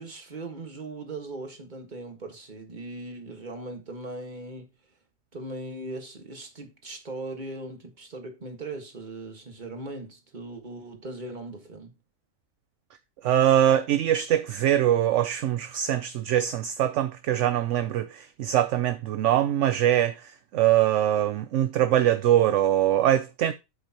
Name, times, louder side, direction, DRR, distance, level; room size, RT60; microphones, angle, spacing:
voice 1, 0.0-4.7 5.3-11.9, right 2 dB, 35° right, 1.8 m, -39 dB
voice 2, 13.2-20.1 20.5-23.5, right 11 dB, 70° right, 0.9 m, -23 dB
8.1 x 7.9 x 2.9 m
omnidirectional pair, 1.4 m